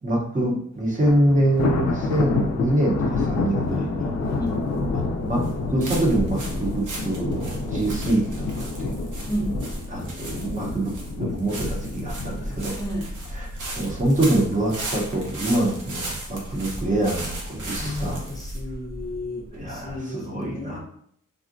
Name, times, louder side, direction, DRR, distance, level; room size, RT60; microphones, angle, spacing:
voice 1, 0.0-4.1 4.9-5.4 5.7-8.2 8.5-8.9 9.9-12.8 13.3-13.5 13.8-18.2 19.5-20.8, right 1 dB, 25° right, -2 dB, 0.7 m, -25 dB
Thunder, 1.0-14.3 14.7-15.0 15.4-15.5 16.3-16.9, left 3 dB, 60° left, 0.5 m, -29 dB
sound 1, 4.5-20.0, right 1 dB, 80° right, 0.8 m, -34 dB
voice 2, 12.7-13.0 16.5-16.8 17.8-20.8, left 1 dB, 10° left, -1 dB, 0.5 m, -32 dB
3.6 x 2.2 x 2.5 m, 0.65 s
wide cardioid pair, 170°, 31 cm